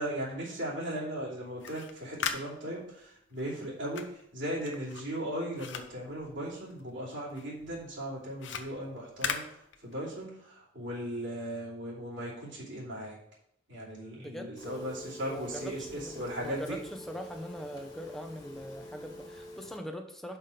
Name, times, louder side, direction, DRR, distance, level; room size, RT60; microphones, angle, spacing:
voice 1, 0.0-9.4 9.8-13.2 13.7-16.8, right 1 dB, 70° right, -6 dB, 2.9 m, -37 dB
sound 1, 1.4-7.0 7.3-10.2, left 6 dB, 70° left, 0.8 m, -40 dB
voice 2, 14.1-14.5 15.3-20.4, equal, ahead, 4 dB, 0.7 m, -42 dB
Telephone, 14.6-19.8, equal, 20° left, 1.6 m, -47 dB
5.8 x 5.3 x 6.6 m, 0.75 s
head